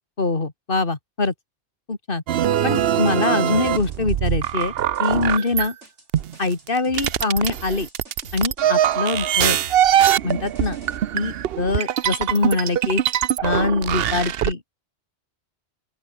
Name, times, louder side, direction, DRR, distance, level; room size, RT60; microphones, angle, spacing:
voice 1, 0.2-1.3 1.9-2.2 2.6-4.7 5.0-5.8 6.4-7.9 8.3-9.6 10.2-10.8 11.1-13.0 13.4-14.6, left 3 dB, 50° left, 2.4 m, -23 dB
sound 1, 2.3-5.7 6.1-14.5, right 10 dB, 60° right, 0.8 m, -22 dB
sound 2, 2.7-11.0, right 2 dB, 85° right, 6.3 m, -44 dB
open air
omnidirectional pair, 1.2 m